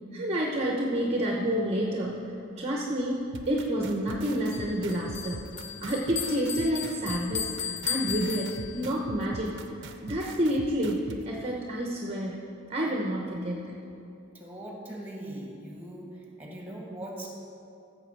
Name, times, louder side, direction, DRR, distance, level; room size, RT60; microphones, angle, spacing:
voice 1, 0.1-2.3 2.6-3.2 3.5-5.5 5.8-9.5 10.0-12.4 12.7-13.8, equal, 30° right, -1 dB, 0.9 m, -29 dB
sound 1, 3.3-11.2, right 3 dB, 60° right, 0.7 m, -42 dB
Bell, 4.5-9.0, left 8 dB, 35° left, 0.5 m, -36 dB
voice 2, 14.3-17.3, right 1 dB, 10° right, -2 dB, 1.9 m, -40 dB
14.5 x 7.0 x 4.6 m, 2.7 s
head